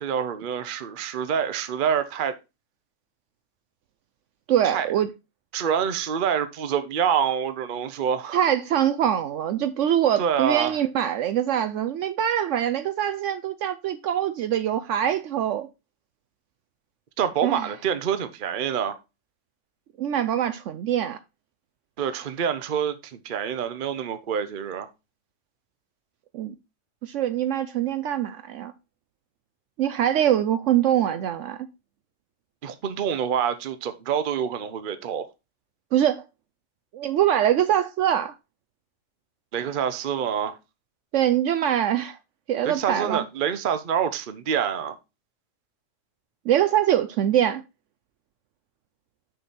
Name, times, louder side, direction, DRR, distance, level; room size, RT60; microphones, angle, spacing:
voice 1, 0.0-2.3 4.6-4.9 5.5-8.4 10.2-10.8 17.2-19.0 22.0-24.9 32.6-35.3 39.5-40.6 42.6-45.0, right 8 dB, 45° right, 0.8 m, -26 dB
voice 2, 4.5-5.1 8.3-15.7 17.4-17.7 20.0-21.2 26.3-26.5 27.0-28.7 29.8-31.7 35.9-36.3 36.9-38.3 41.1-42.2 42.5-43.2 46.5-47.6, right 10 dB, 75° right, 0.9 m, -23 dB
6.6 x 6.1 x 4.1 m
omnidirectional pair, 1.3 m